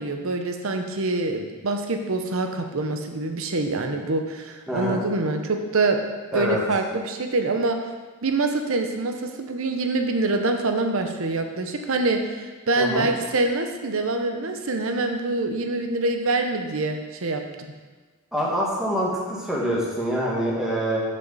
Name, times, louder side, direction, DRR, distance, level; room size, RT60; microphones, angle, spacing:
voice 1, 0.0-6.0 6.3-7.8 8.2-17.4, right 2 dB, 65° right, 5 dB, 0.8 m, -25 dB
voice 2, 4.7-5.0 6.3-6.6 12.8-13.1 18.3-21.0, equal, ahead, -5 dB, 1.8 m, -25 dB
12.5 x 5.6 x 4.1 m, 1.4 s
head